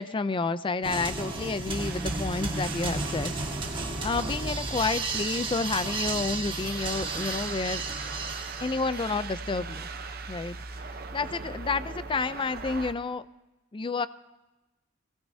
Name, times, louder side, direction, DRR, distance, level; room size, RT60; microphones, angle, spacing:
voice 1, 0.0-3.3 3.9-8.1 8.6-9.9 10.3-10.6 10.9-13.3 13.7-14.1, left 4 dB, 25° left, 14 dB, 0.4 m, -30 dB
sound 1, 0.8-9.3, right 3 dB, 25° right, 1.7 m, -33 dB
sound 2, 1.8-12.9, right 3 dB, 50° right, 0.9 m, -40 dB
24.0 x 18.0 x 2.8 m, 1.0 s
head